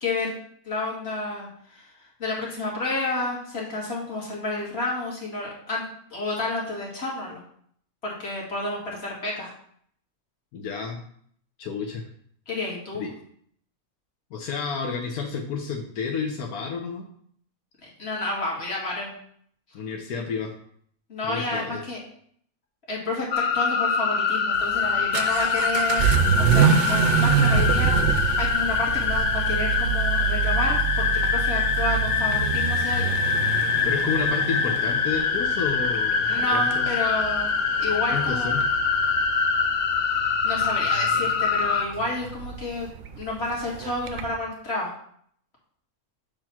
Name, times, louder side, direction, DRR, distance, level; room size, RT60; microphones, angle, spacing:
voice 1, 0.0-0.3 0.6-1.9 2.2-5.9 6.1-7.4 8.0-9.5 12.5-13.0 17.8-19.2 21.1-22.0 22.9-23.3 23.5-26.1 26.4-33.1 36.2-38.5 40.4-44.9, left 2 dB, 45° left, -4 dB, 2.0 m, -30 dB
voice 2, 10.5-11.0 11.6-12.1 12.9-13.1 14.3-17.1 19.7-20.5 21.2-21.8 33.8-37.0 38.1-38.6, left 5 dB, 85° left, 2 dB, 1.3 m, -31 dB
sound 1, 23.3-41.8, left 5 dB, 60° left, 0.6 m, -24 dB
Vehicle / Accelerating revving vroom, 24.6-44.4, right 8 dB, 65° right, 0.8 m, -27 dB
6.8 x 3.0 x 5.8 m, 0.63 s
omnidirectional pair, 1.5 m